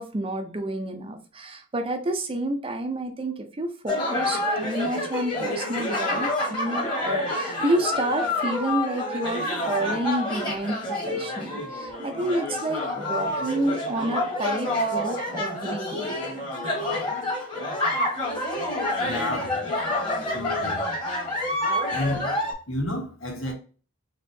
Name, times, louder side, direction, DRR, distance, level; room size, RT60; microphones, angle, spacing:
voice 1, 0.0-16.2, right 1 dB, 25° right, 0.5 m, -29 dB
sound 1, 3.9-22.5, left 1 dB, 20° left, 1.3 m, -28 dB
voice 2, 19.0-19.6 20.3-20.8 21.9-22.3 22.7-23.5, left 1 dB, 70° left, 1.5 m, -30 dB
4.4 x 3.0 x 2.7 m
head